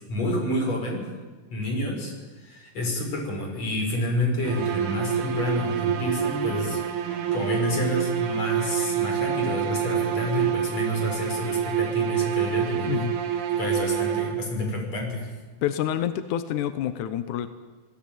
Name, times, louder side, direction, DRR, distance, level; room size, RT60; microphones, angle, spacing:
voice 1, 0.1-1.1 1.5-2.1 2.4-13.0 13.6-15.3, left 1 dB, 40° left, 2 dB, 6.6 m, -29 dB
sound 1, 4.4-14.7, right 9 dB, 70° right, 3.9 m, -27 dB
voice 2, 15.6-17.5, left 10 dB, 75° left, 11 dB, 1.8 m, -27 dB
29.0 x 18.5 x 9.0 m, 1.3 s
omnidirectional pair, 4.8 m